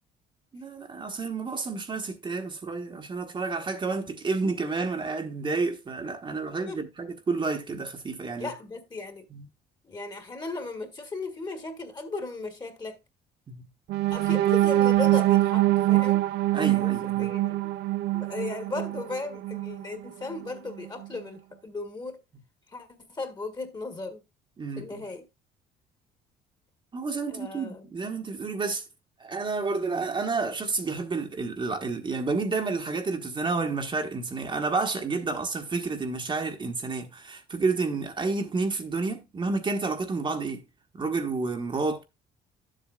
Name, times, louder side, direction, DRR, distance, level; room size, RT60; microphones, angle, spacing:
voice 1, 0.5-8.5 9.3-9.5 13.5-13.6 16.5-17.3 24.6-25.0 26.9-28.8 29.2-40.6 40.9-42.0, right 4 dB, 30° right, 1.2 m, -30 dB
voice 2, 8.4-9.3 9.8-13.0 14.1-16.3 16.6-17.7 18.1-22.2 22.7-24.2 24.8-25.3 27.3-27.9, left 3 dB, 25° left, 1.6 m, -36 dB
sound 1, 13.9-19.8 20.3-20.5 20.8-21.1, right 16 dB, 75° right, 0.5 m, -24 dB
11.5 x 7.6 x 2.4 m
cardioid pair, 110°, 17 cm